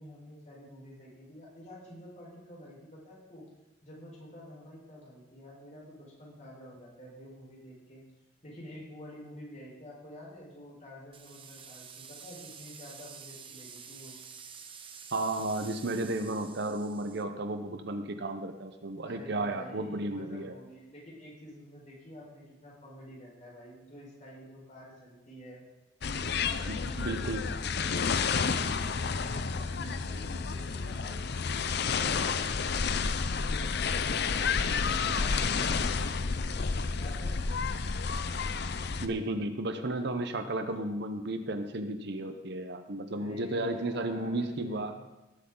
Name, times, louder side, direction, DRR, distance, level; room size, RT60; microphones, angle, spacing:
voice 1, 0.0-3.4 3.8-8.0 8.4-14.2 19.0-25.6 26.2-31.3 31.7-37.6 43.1-45.1, equal, 40° left, -4 dB, 4.8 m, -49 dB
sound 1, 11.1-17.2, right 6 dB, 30° right, 0.8 m, -49 dB
voice 2, 15.1-20.5 26.7-27.4 39.0-45.0, right 2 dB, 60° right, 7 dB, 0.9 m, -33 dB
sound 2, 26.0-39.1, left 5 dB, 60° left, 0.6 m, -30 dB
18.5 x 8.4 x 3.9 m, 1.0 s
head